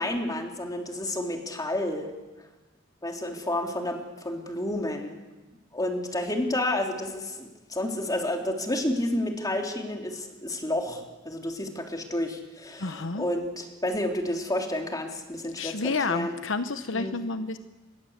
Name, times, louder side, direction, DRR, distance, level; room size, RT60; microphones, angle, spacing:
voice 1, 0.0-2.1 3.0-5.2 5.7-16.3 16.9-17.2, left 1 dB, 20° left, 3 dB, 3.3 m, -30 dB
voice 2, 12.8-13.2 15.6-17.6, left 4 dB, 65° left, 10 dB, 1.0 m, -30 dB
26.5 x 21.5 x 8.1 m, 1.2 s
head